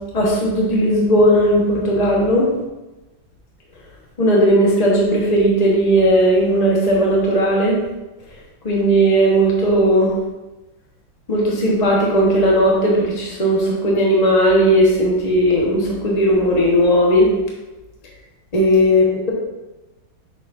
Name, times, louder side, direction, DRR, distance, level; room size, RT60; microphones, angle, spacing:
voice 1, 0.1-2.5 4.2-7.8 8.6-10.1 11.3-17.3 18.5-19.3, equal, 25° left, -3 dB, 1.2 m, -16 dB
6.5 x 6.4 x 2.7 m, 1.1 s
omnidirectional pair, 2.1 m